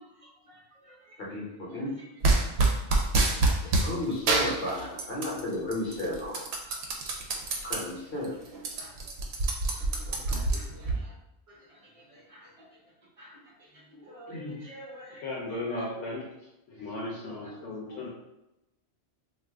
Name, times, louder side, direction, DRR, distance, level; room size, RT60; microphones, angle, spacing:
voice 1, 0.0-1.2 3.2-3.6 8.8-8.9 9.8-9.9 10.3-11.1 11.5-12.5 13.2-15.2 15.7-15.9 17.2-18.1, equal, 40° right, -2 dB, 0.6 m, -50 dB
voice 2, 1.2-1.9 3.8-6.5 7.6-8.4 10.1-10.4, left 1 dB, 55° left, -4 dB, 1.0 m, -33 dB
sound 1, 2.2-3.9 4.3-5.4 5.7-7.8 8.2-8.3 8.5-11.0, right 3 dB, 70° right, 0.8 m, -26 dB
voice 3, 6.7-7.1 7.5-7.6 9.6-9.8 14.3-14.6 15.2-16.3 16.7-18.1, left 2 dB, 85° left, -4 dB, 0.9 m, -37 dB
2.4 x 2.4 x 3.3 m, 0.93 s
omnidirectional pair, 1.2 m